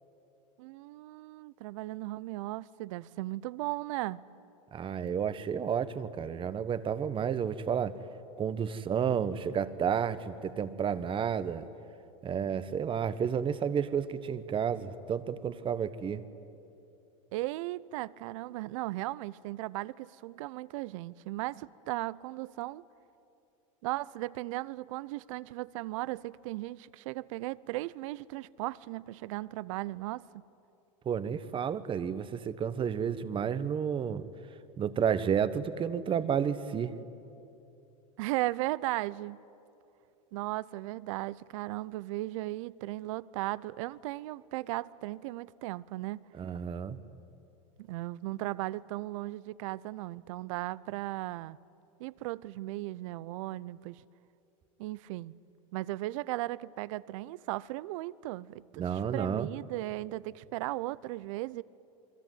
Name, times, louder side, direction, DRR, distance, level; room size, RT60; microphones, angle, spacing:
voice 1, 0.6-4.2 17.3-22.8 23.8-30.3 38.2-39.4 40.3-46.2 47.8-51.6 52.0-54.0 54.8-55.3 55.7-61.6, right 18 dB, 70° right, 0.7 m, -36 dB
voice 2, 4.7-8.0 8.4-11.7 12.2-16.2 31.0-34.3 34.8-36.9 46.4-47.0 58.8-59.5, right 7 dB, 30° right, 1.3 m, -31 dB
28.0 x 22.0 x 9.3 m
hypercardioid pair, 105°, 17 cm